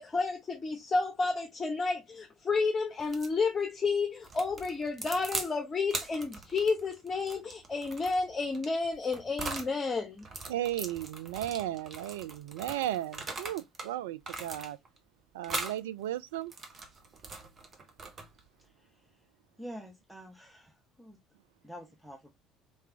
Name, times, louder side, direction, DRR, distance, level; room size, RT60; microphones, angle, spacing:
voice 1, 0.0-10.2, left 4 dB, 30° left, 1.0 m, -31 dB
sound 1, 3.0-3.4 4.2-5.5 5.9-9.7 10.2-13.9 14.2-15.0 15.4-15.8 16.3-18.5, right 3 dB, 35° right, 1.3 m, -40 dB
voice 2, 10.5-14.8 15.3-16.5, right 13 dB, 70° right, 0.3 m, -35 dB
voice 3, 19.6-21.2 21.6-22.4, equal, ahead, 1.0 m, -47 dB
4.6 x 3.5 x 2.8 m
figure-of-eight pair, 55°, 0 cm